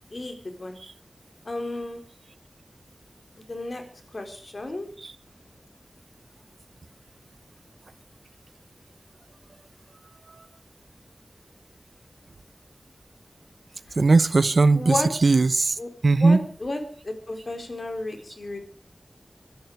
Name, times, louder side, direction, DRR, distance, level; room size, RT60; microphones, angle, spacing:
voice 1, 0.1-0.8 1.4-2.0 3.5-3.8 4.1-4.9 13.9-14.0 14.7-15.1 15.8-18.6, left 2 dB, 55° left, 4.0 m, -33 dB
voice 2, 14.0-15.5 16.0-16.5, right 3 dB, 75° right, 0.8 m, -18 dB
23.5 x 11.5 x 4.7 m
wide cardioid pair, 60°, 0 cm